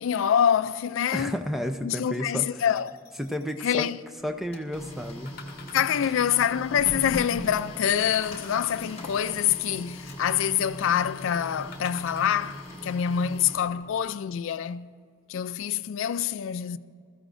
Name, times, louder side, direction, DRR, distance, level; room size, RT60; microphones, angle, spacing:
voice 1, 0.0-1.3 1.8-2.9 3.6-4.0 5.7-14.9 15.3-16.8, left 9 dB, 65° left, 0.3 m, -26 dB
voice 2, 1.1-2.5 3.2-3.9 4.2-5.3 6.0-6.1, equal, ahead, 0.5 m, -31 dB
sound 1, 2.6-3.6 5.3-6.3 8.0-9.2 11.7-12.9 13.5-13.6, left 5 dB, 45° left, 1.1 m, -47 dB
Printer, 4.2-14.0, left 1 dB, 25° left, 1.5 m, -40 dB
21.5 x 14.0 x 2.5 m
head